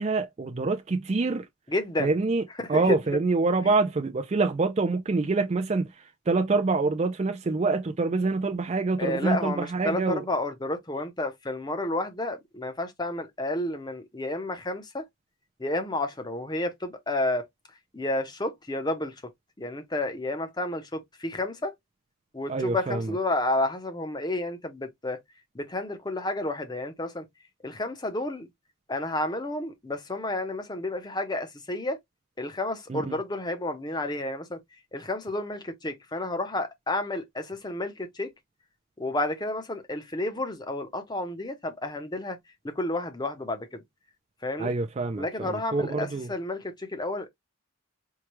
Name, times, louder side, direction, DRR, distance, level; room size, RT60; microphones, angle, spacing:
voice 1, 0.0-1.5 2.0-2.4 2.7-10.2 22.5-23.1 32.9-33.2 44.6-46.3, right 3 dB, 30° right, 0.4 m, -26 dB
voice 2, 1.7-2.1 2.6-3.2 9.0-15.1 15.6-17.4 17.9-19.2 19.6-21.7 22.3-25.2 25.5-27.3 27.6-28.5 28.9-32.0 32.4-34.6 34.9-38.3 39.0-42.4 42.6-43.8 44.4-44.7 45.2-47.3, left 2 dB, 20° left, 0.7 m, -31 dB
4.6 x 2.3 x 2.9 m
head